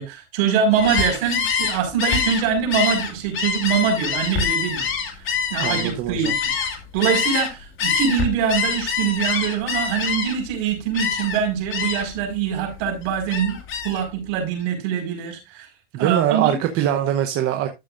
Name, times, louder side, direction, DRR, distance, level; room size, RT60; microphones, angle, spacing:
voice 1, 0.0-4.9 5.5-6.5 6.9-13.6 13.8-15.7 16.0-16.6, right 7 dB, 55° right, 5.0 m, -23 dB
Gull seagull, 0.7-7.5 7.8-10.5 10.9-11.4 11.7-12.2 12.6-14.0, left 6 dB, 35° left, 2.1 m, -25 dB
voice 2, 5.6-6.3 15.9-17.7, right 11 dB, 40° right, 1.0 m, -22 dB
12.5 x 6.8 x 2.6 m
supercardioid pair, 125°, 36 cm